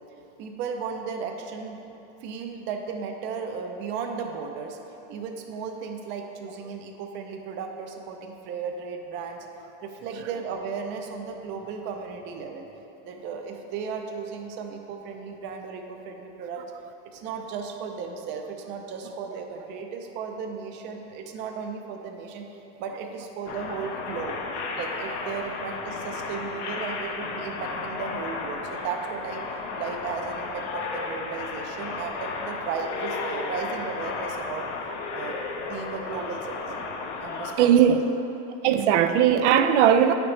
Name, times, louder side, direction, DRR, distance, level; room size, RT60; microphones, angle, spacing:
voice 1, 0.4-4.8 5.1-9.5 9.8-12.7 13.0-16.6 17.1-22.5 22.8-24.4 24.8-29.4 29.7-34.7 35.1-36.8 37.2-38.1, right 5 dB, 35° right, 4 dB, 0.5 m, -35 dB
sound 1, 23.4-37.5, left 4 dB, 75° left, 1.0 m, -34 dB
voice 2, 37.6-38.0 38.6-40.1, right 9 dB, 85° right, 8 dB, 0.5 m, -18 dB
8.6 x 5.9 x 3.2 m, 3.0 s
supercardioid pair, 165°, 34 cm